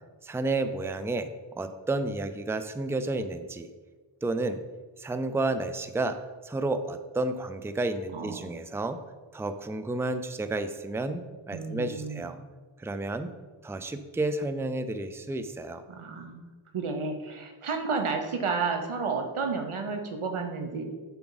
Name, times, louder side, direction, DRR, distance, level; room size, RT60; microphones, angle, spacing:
voice 1, 0.2-1.3 1.6-3.7 4.2-4.6 5.0-6.2 6.4-9.0 9.3-12.4 12.8-13.3 13.6-15.8, right 2 dB, 5° right, 10 dB, 0.4 m, -31 dB
voice 2, 8.1-8.5 11.5-12.3 15.9-16.4 16.7-20.9, right 4 dB, 90° right, 5 dB, 1.0 m, -31 dB
7.2 x 5.9 x 4.0 m, 1.3 s
wide cardioid pair, 40°, 48 cm